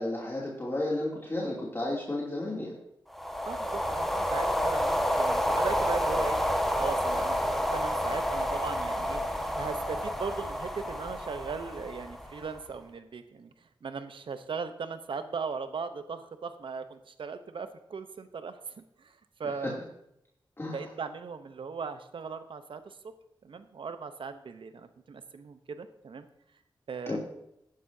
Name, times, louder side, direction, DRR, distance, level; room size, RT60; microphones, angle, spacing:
voice 1, 0.0-2.7 19.6-19.7 20.6-20.8 27.1-27.2, left 1 dB, 30° left, -5 dB, 2.8 m, -32 dB
sound 1, 3.1-12.6, equal, ahead, 1.4 m, -29 dB
voice 2, 3.5-6.4 6.7-9.2 9.6-13.5 13.8-18.6 19.0-19.1 19.4-19.8 20.7-23.0 23.4-26.3 26.9-27.2, right 5 dB, 80° right, 10 dB, 0.9 m, -38 dB
14.0 x 10.5 x 2.8 m, 0.80 s
cardioid pair, 65°, 9 cm